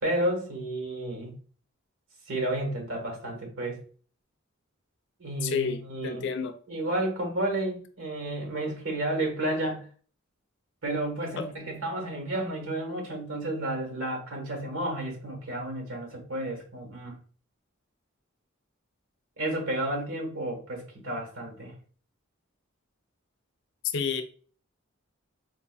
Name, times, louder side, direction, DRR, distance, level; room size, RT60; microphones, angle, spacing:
voice 1, 0.0-1.3 2.3-3.8 5.2-6.2 6.7-9.8 10.8-17.2 19.4-21.7, right 1 dB, 85° right, 1.3 m, -31 dB
voice 2, 5.4-6.6 11.4-11.5 23.9-24.2, left 5 dB, 60° left, 0.4 m, -30 dB
4.5 x 2.6 x 2.2 m
head